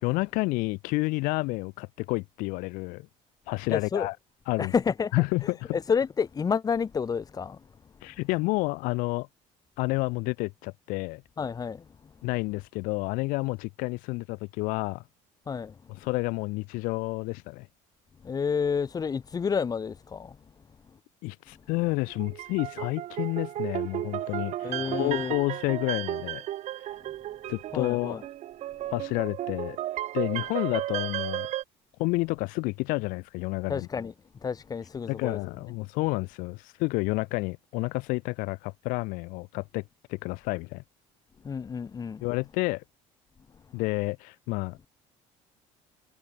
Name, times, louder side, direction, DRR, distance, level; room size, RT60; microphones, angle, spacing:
voice 1, 0.0-3.1 3.5-4.2 4.5-4.7 5.1-5.8 8.0-9.3 9.8-11.2 12.2-15.0 16.0-17.7 21.2-26.4 27.5-28.2 28.9-29.8 30.1-31.5 32.0-33.9 35.1-39.8 40.1-40.8 42.2-42.8 43.7-44.9, left 25 dB, 85° left, 1.9 m, -30 dB
voice 2, 3.7-4.1 4.6-5.1 5.7-7.6 11.4-11.9 15.5-15.7 18.2-20.4 24.6-25.3 27.7-28.2 33.7-34.1 34.4-35.4 41.4-42.2, left 6 dB, 25° left, 4.2 m, -29 dB
sound 1, 22.1-31.6, right 13 dB, 55° right, 4.8 m, -34 dB
cardioid pair, 130°, 14 cm